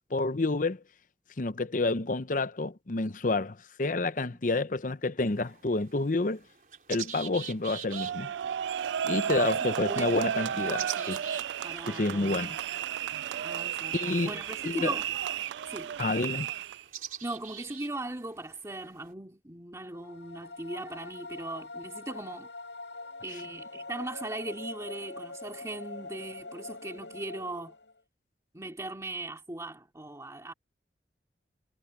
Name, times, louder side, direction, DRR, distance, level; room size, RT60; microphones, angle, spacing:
voice 1, 0.1-0.8 1.4-6.4 6.9-8.3 9.0-11.2 11.9-12.6 13.9-14.3 14.6-14.9 16.0-16.5, left 2 dB, 50° left, 0.8 m, -29 dB
sound 1, 5.2-19.1, right 9 dB, 50° right, 4.1 m, -46 dB
sound 2, 7.9-16.8, right 9 dB, 90° right, 0.3 m, -33 dB
voice 2, 9.2-10.2 10.5-11.2 11.6-12.6 13.4-14.0 14.2-15.1 15.7-16.0 17.2-22.5 23.2-27.7 28.5-30.5, right 2 dB, 20° right, 2.5 m, -39 dB
sound 3, 19.8-28.0, left 3 dB, 90° left, 6.4 m, -44 dB
head